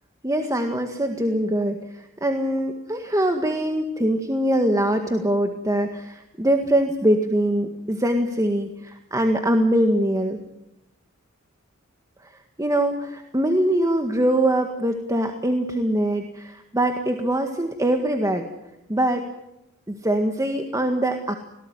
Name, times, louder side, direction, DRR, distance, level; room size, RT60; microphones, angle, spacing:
voice 1, 0.2-1.8 2.2-10.4 12.6-18.4 18.9-19.2 19.9-21.3, right 1 dB, 15° right, 5 dB, 1.8 m, -23 dB
26.0 x 18.5 x 9.6 m, 0.89 s
head